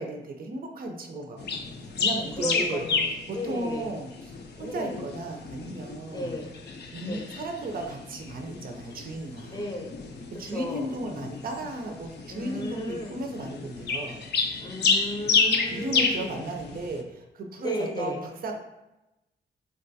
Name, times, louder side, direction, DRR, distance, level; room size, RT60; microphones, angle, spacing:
voice 1, 0.0-2.9 3.3-4.1 4.6-6.4 6.9-9.6 10.4-14.2 15.7-18.6, right 2 dB, 50° right, 3 dB, 0.5 m, -35 dB
sound 1, 1.4-17.0, left 4 dB, 60° left, 0.5 m, -31 dB
voice 2, 2.4-3.9 4.6-5.0 6.1-6.5 7.0-7.2 9.5-9.9 10.5-10.9 12.3-13.1 14.6-16.5 17.6-18.2, left 1 dB, 20° left, 0 dB, 0.6 m, -34 dB
3.7 x 2.2 x 2.6 m, 0.96 s
cardioid pair, 70°, 19 cm